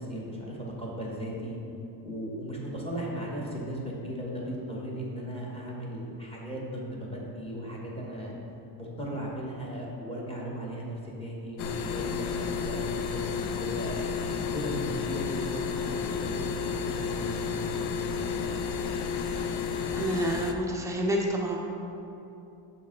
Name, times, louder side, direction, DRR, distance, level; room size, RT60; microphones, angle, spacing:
voice 1, 0.0-1.6 2.0-8.3 8.8-13.3 13.6-14.0 14.5-18.4, equal, 10° left, -4 dB, 0.8 m, -37 dB
sound 1, 11.6-20.5, left 6 dB, 85° left, 0.6 m, -31 dB
voice 2, 19.9-21.6, right 1 dB, 5° right, -1 dB, 0.4 m, -29 dB
6.6 x 3.9 x 3.7 m, 2.8 s
cardioid pair, 140°, 47 cm